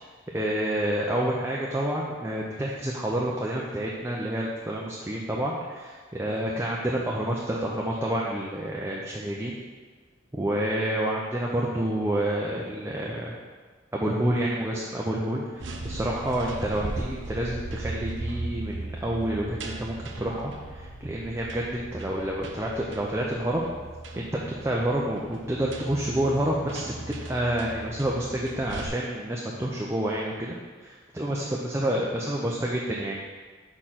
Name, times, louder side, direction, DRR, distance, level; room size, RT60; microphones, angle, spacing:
voice 1, 0.3-9.6 10.3-13.4 13.9-23.7 24.2-24.3 24.6-33.2, right 1 dB, 15° right, -3 dB, 0.5 m, -29 dB
sound 1, 15.5-28.9, right 2 dB, 65° right, 0.6 m, -38 dB
4.9 x 4.5 x 5.7 m, 1.4 s
head